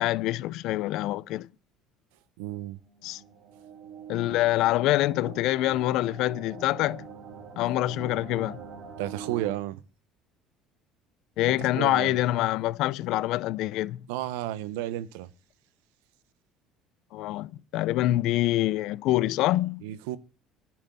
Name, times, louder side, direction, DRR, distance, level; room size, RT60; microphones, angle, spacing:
voice 1, 0.0-1.5 3.0-3.2 4.1-7.1 7.6-8.6 11.4-14.1 17.1-19.8, left 15 dB, 70° left, 0.5 m, -26 dB
voice 2, 2.4-2.8 9.0-9.8 11.6-12.2 14.1-15.3 19.8-20.2, right 14 dB, 85° right, 0.8 m, -32 dB
sound 1, 2.6-9.6, right 7 dB, 60° right, 2.4 m, -44 dB
10.5 x 6.1 x 7.9 m
supercardioid pair, 90°, 0 cm